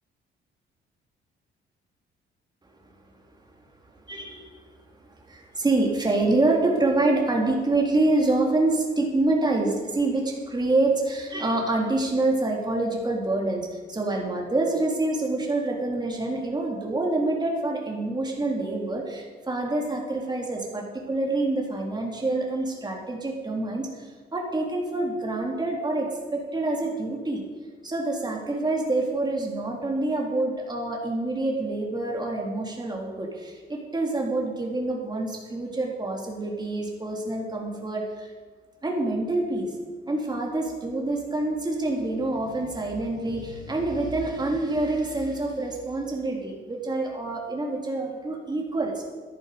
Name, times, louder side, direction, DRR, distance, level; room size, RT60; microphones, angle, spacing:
voice 1, 4.1-4.5 5.3-27.4 27.8-38.3 38.8-39.7 40.1-49.0, right 2 dB, 20° right, 0 dB, 3.5 m, -26 dB
13.5 x 11.5 x 5.2 m, 1.5 s
cardioid pair, 90°, 20 cm